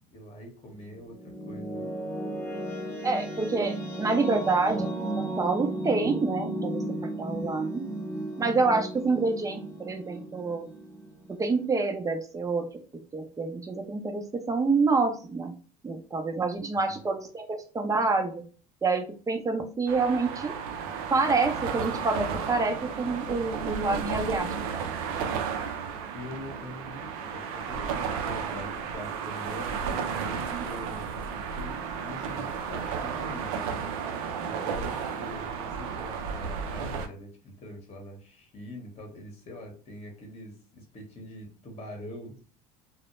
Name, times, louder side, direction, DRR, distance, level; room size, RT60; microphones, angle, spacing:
voice 1, 0.1-1.9 16.9-17.0 26.1-42.4, left 1 dB, 35° left, 2 dB, 1.0 m, -44 dB
sound 1, 0.7-11.8, right 1 dB, 10° left, 0.9 m, -35 dB
voice 2, 3.0-7.8 8.4-10.7 11.3-12.6 13.1-15.5 15.8-18.4 18.8-20.5 21.1-24.9 30.5-30.6 34.3-34.5, right 3 dB, 20° right, 5 dB, 0.6 m, -27 dB
sound 2, 19.9-37.1, right 6 dB, 80° right, 0.4 m, -33 dB
2.1 x 2.1 x 3.0 m, 0.38 s
hypercardioid pair, 75°, 18 cm